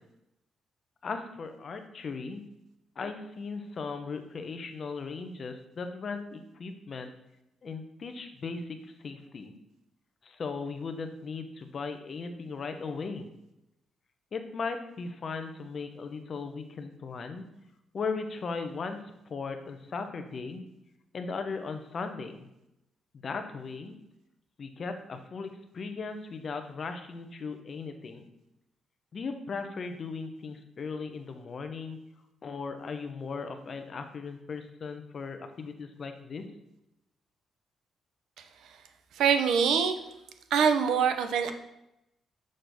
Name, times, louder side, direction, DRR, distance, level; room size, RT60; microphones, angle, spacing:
voice 1, 1.0-2.4 3.0-7.1 7.6-8.8 9.0-9.5 10.2-13.3 14.3-17.5 17.9-19.0 19.3-20.6 21.1-22.5 23.2-24.0 24.6-28.2 29.1-32.0 32.4-36.5, left 4 dB, 40° left, 7 dB, 0.7 m, -37 dB
voice 2, 39.2-40.0 40.5-41.5, right 7 dB, 85° right, 7 dB, 0.6 m, -24 dB
6.4 x 5.8 x 3.5 m, 0.86 s
cardioid pair, 150°, 0 cm